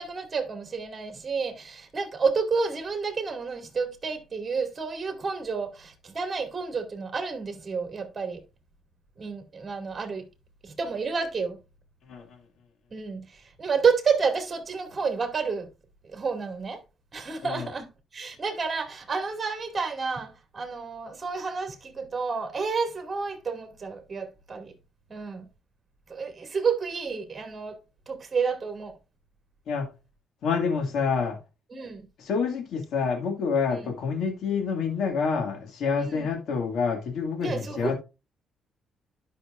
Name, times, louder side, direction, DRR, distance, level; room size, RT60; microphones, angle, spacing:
voice 1, 0.0-8.4 9.2-10.3 10.6-11.6 12.9-15.7 16.0-16.8 17.1-17.9 18.1-24.7 25.1-25.5 26.1-28.9 31.7-32.0 33.7-33.8 36.0-36.3 37.4-37.9, right 5 dB, 30° right, 2.3 m, -30 dB
voice 2, 30.4-31.4 32.2-37.9, left 5 dB, 75° left, 2.0 m, -27 dB
11.5 x 5.8 x 2.5 m
cardioid pair, 90°, 0 cm